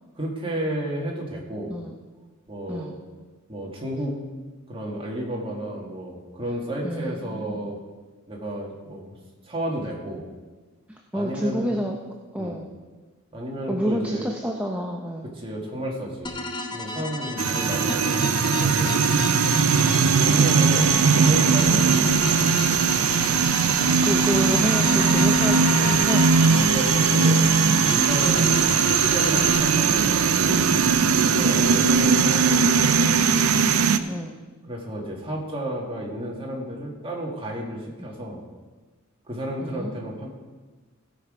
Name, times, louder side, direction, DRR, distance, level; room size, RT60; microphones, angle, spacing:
voice 1, 0.2-1.7 2.5-3.0 3.5-4.2 4.7-7.8 8.3-9.2 9.4-10.2 11.1-11.7 12.4-12.6 13.3-14.2 15.4-16.4 16.7-19.0 19.7-22.5 25.8-26.1 26.5-27.5 27.9-30.6 31.2-33.2 34.7-38.4 39.3-40.3, right 1 dB, 25° right, -2 dB, 2.0 m, -32 dB
voice 2, 6.8-7.6 10.9-12.0 12.3-12.7 13.7-15.3 21.7-21.9 23.8-26.3 31.4-31.6 34.1-34.3 39.6-39.9, equal, 5° right, 0 dB, 0.7 m, -29 dB
sound 1, 16.2-29.6, left 3 dB, 20° left, 0.8 m, -32 dB
sound 2, 17.4-34.0, right 5 dB, 70° right, 0.5 m, -19 dB
16.5 x 6.0 x 5.0 m, 1.3 s
head